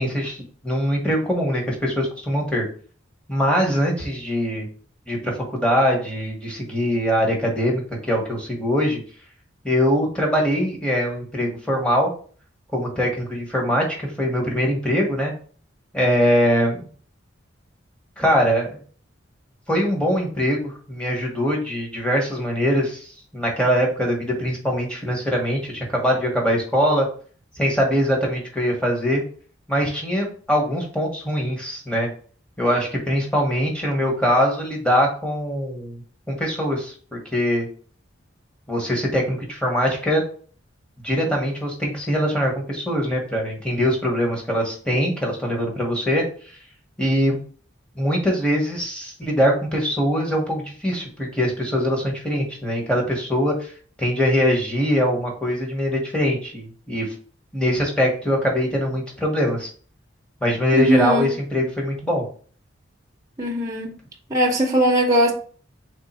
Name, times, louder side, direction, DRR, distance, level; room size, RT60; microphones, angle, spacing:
voice 1, 0.0-2.7 3.3-4.7 5.1-9.0 9.6-12.1 12.7-15.3 15.9-16.9 18.2-18.8 19.7-23.0 23.3-27.1 27.6-29.2 29.7-32.1 32.6-37.7 38.7-40.2 41.0-46.2 47.0-47.4 47.9-53.7 54.0-57.1 57.5-59.7 60.4-62.2, equal, 5° left, 1.1 m, -22 dB
voice 2, 60.7-61.3 63.4-63.9 64.3-65.3, equal, 20° right, 0.6 m, -19 dB
3.6 x 3.5 x 4.2 m
head